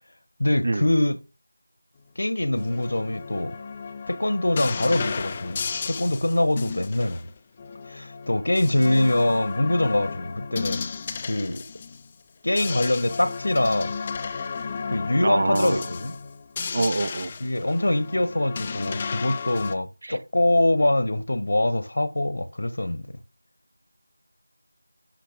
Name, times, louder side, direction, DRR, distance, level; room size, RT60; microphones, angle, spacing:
voice 1, 0.4-1.2 2.2-3.6 4.1-7.2 7.9-10.9 11.3-11.6 12.4-13.9 14.9-16.1 17.4-23.1, left 1 dB, 60° left, 1.4 m, -24 dB
sound 1, 2.6-12.1 12.4-19.7, left 5 dB, 20° left, 0.6 m, -33 dB
voice 2, 15.2-15.9 16.7-17.3 20.0-20.2, right 2 dB, 45° right, 0.6 m, -25 dB
10.5 x 5.3 x 5.2 m
figure-of-eight pair, 170°, 0 cm